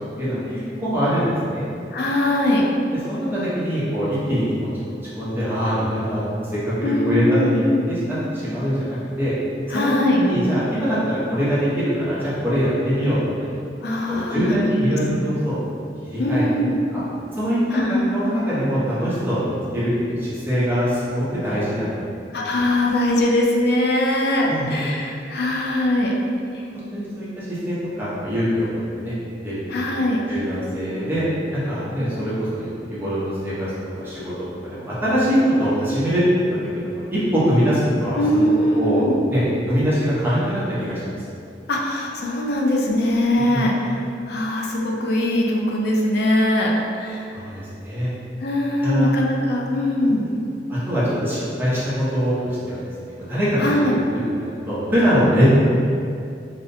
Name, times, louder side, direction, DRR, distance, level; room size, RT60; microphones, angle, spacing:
voice 1, 0.2-1.6 3.1-9.4 9.7-13.5 14.1-15.6 16.0-16.4 16.9-17.0 17.4-17.6 17.9-22.0 24.4-24.9 26.7-29.1 29.4-29.9 30.3-36.2 36.5-38.2 38.8-39.0 39.3-41.2 43.5-43.6 47.3-48.1 48.8-49.1 50.0-50.1 50.7-52.8 53.3-53.7 54.4-55.5, equal, 10° right, -10 dB, 0.6 m, -23 dB
voice 2, 1.9-2.7 6.8-7.9 9.7-10.2 13.8-15.2 16.2-16.7 17.7-18.1 22.3-26.1 26.5-26.6 29.7-30.2 38.2-39.2 41.7-43.9 44.3-46.7 47.0-47.3 48.4-50.2 53.6-54.0, left 1 dB, 60° left, -1 dB, 0.4 m, -21 dB
2.6 x 2.1 x 2.5 m, 2.5 s
head